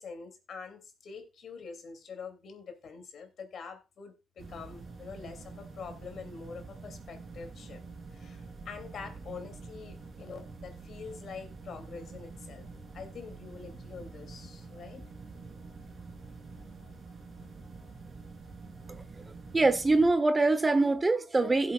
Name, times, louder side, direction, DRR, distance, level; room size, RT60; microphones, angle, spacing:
voice 1, 0.0-7.8 8.1-12.6 12.9-15.1, left 5 dB, 65° left, 2.7 m, -45 dB
sound 1, 4.4-20.1, right 4 dB, 50° right, 3.1 m, -47 dB
voice 2, 19.5-21.7, right 3 dB, 25° right, 1.0 m, -24 dB
16.5 x 7.7 x 2.4 m
cardioid pair, 75°, 0 cm